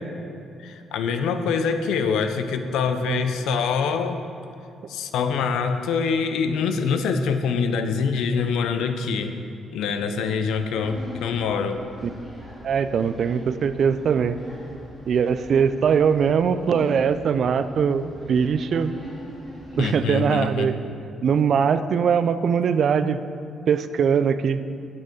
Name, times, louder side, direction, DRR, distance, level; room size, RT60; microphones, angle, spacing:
voice 1, 0.6-4.2 4.9-9.3 9.7-11.8 19.8-20.7, left 5 dB, 85° left, 8 dB, 0.5 m, -25 dB
sound 1, 10.7-19.9, equal, ahead, 2.1 m, -41 dB
voice 2, 12.6-14.4 15.1-18.9 19.8-20.8 21.2-23.2 23.7-24.6, right 6 dB, 60° right, 12 dB, 0.3 m, -21 dB
7.5 x 6.3 x 5.2 m, 2.7 s
cardioid pair, 90°, 0 cm